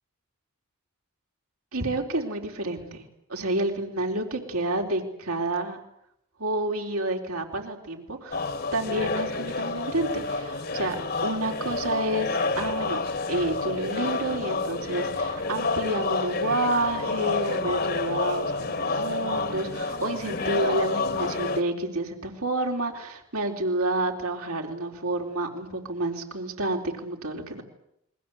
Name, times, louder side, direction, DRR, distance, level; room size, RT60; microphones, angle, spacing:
voice 1, 1.7-3.0 3.3-5.8 6.4-11.0 11.2-27.6, right 2 dB, 80° right, 2 dB, 4.1 m, -29 dB
sound 1, 8.3-21.6, left 3 dB, 45° left, 1.5 m, -29 dB
28.5 x 22.0 x 8.0 m, 0.77 s
head